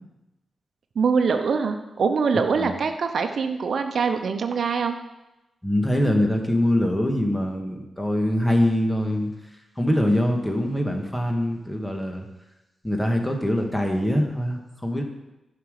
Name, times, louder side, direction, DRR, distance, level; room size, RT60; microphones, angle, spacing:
voice 1, 1.0-5.0, right 5 dB, 65° right, 6 dB, 0.8 m, -23 dB
voice 2, 5.6-9.3 9.8-12.3 12.8-15.0, left 1 dB, 10° left, 3 dB, 1.9 m, -23 dB
11.0 x 6.0 x 6.7 m, 0.99 s
cardioid pair, 65°, 0 cm